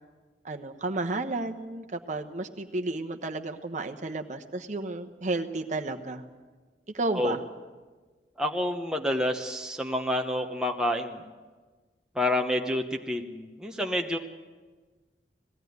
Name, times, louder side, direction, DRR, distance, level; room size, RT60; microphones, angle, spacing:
voice 1, 0.4-6.2 6.9-7.4, right 2 dB, 45° right, 6 dB, 1.1 m, -32 dB
voice 2, 8.4-11.2 12.2-14.2, left 1 dB, 5° right, 2 dB, 1.0 m, -28 dB
20.0 x 16.0 x 9.4 m, 1.4 s
head